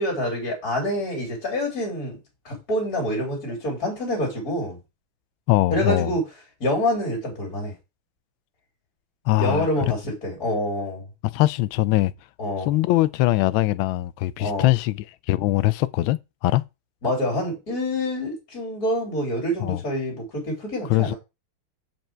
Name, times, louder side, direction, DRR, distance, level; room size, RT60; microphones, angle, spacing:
voice 1, 0.0-2.2 2.5-4.8 5.7-6.2 6.6-7.7 9.4-11.1 12.4-12.7 14.4-14.7 17.0-21.1, left 1 dB, 40° left, 3.4 m, -26 dB
voice 2, 5.5-6.1 9.3-9.7 11.2-12.1 12.7-15.0 15.3-16.6 19.6-19.8 20.9-21.1, left 16 dB, 75° left, 1.3 m, -21 dB
7.4 x 5.3 x 4.5 m
omnidirectional pair, 2.4 m